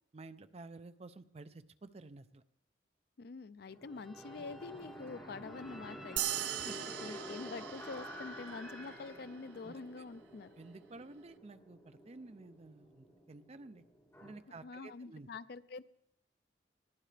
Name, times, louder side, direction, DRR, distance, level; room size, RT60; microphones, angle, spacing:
voice 1, 0.1-2.4 6.6-7.2 9.6-10.0 10.6-13.8 14.2-15.3, right 3 dB, 35° right, 11 dB, 0.5 m, -52 dB
voice 2, 3.2-6.2 7.0-10.5 14.5-15.8, left 4 dB, 60° left, 15 dB, 0.4 m, -46 dB
sound 1, 3.7-14.3, equal, 15° left, 4.7 m, -50 dB
sound 2, 3.8-9.8, equal, ahead, 1.1 m, -58 dB
sound 3, 6.2-8.9, right 13 dB, 85° right, 0.4 m, -40 dB
20.5 x 14.5 x 3.3 m, 0.82 s
head